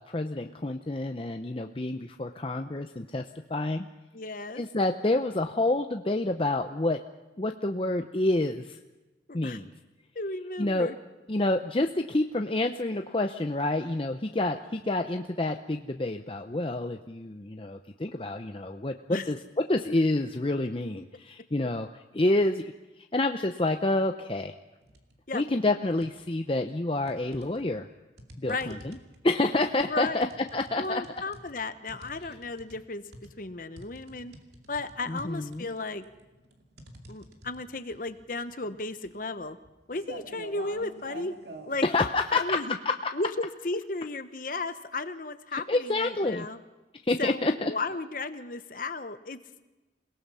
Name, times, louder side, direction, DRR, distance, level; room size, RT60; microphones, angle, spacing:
voice 1, 0.0-3.2 3.5-3.9 4.6-7.0 7.4-8.8 9.3-9.7 10.6-10.9 11.3-19.4 19.7-21.9 22.1-22.6 23.1-24.5 25.3-27.9 28.4-29.0 29.2-30.3 30.5-31.0 35.1-35.7 41.8-42.6 42.8-42.9 45.5-46.5 47.0-47.7, left 2 dB, 30° left, 5 dB, 0.6 m, -28 dB
voice 2, 4.1-4.6 9.3-9.6 10.1-11.0 19.1-19.3 25.3-25.4 28.4-28.7 29.9-30.2 30.8-33.0 33.4-34.3 34.7-36.0 37.1-39.6 39.9-41.3 41.7-42.8 43.1-46.6 47.2-49.4, left 3 dB, 45° left, 10 dB, 1.1 m, -34 dB
sound 1, 24.8-25.2 25.6-26.5 27.1-41.8, right 1 dB, 65° right, 2.5 m, -48 dB
28.0 x 18.0 x 5.6 m, 1.1 s
head